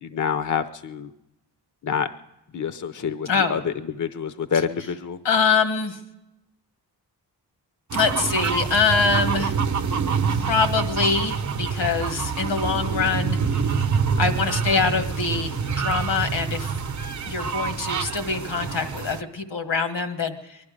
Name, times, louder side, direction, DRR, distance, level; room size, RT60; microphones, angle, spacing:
voice 1, 0.0-1.1 1.8-2.1 2.5-5.2, left 7 dB, 45° left, 12 dB, 0.7 m, -27 dB
voice 2, 5.2-6.0 7.9-9.5 10.3-13.4 14.2-16.7 17.3-20.6, left 5 dB, 80° left, 7 dB, 1.7 m, -24 dB
sound 1, 7.9-19.2, right 5 dB, 45° right, 0.8 m, -26 dB
20.5 x 12.5 x 5.1 m, 0.91 s
cardioid pair, 80°, 42 cm